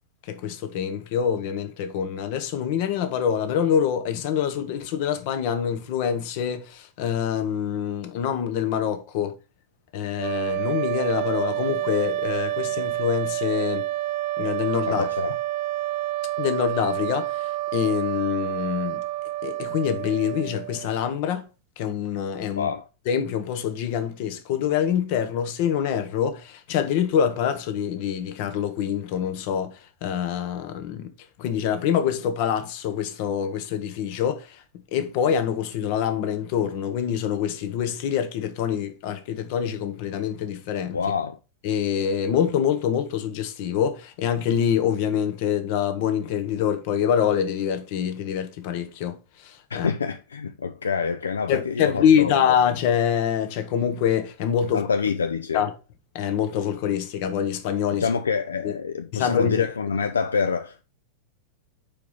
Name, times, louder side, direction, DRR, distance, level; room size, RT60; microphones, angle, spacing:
voice 1, 0.3-9.3 9.9-13.9 14.4-15.1 16.4-19.0 19.4-21.5 21.8-22.7 23.1-31.1 31.4-34.6 34.9-41.0 41.6-49.2 49.4-49.9 51.5-54.8 55.5-55.7 56.1-58.1 58.6-58.7 59.1-59.7, left 8 dB, 45° left, 1.0 m, -25 dB
sound 1, 10.2-21.1, right 15 dB, 45° right, 0.4 m, -29 dB
voice 2, 14.9-15.3 22.6-22.9 40.9-41.4 49.7-52.6 54.7-55.6 57.9-60.8, left 5 dB, 70° left, 0.4 m, -26 dB
5.2 x 4.6 x 5.5 m
figure-of-eight pair, 90°, 0 cm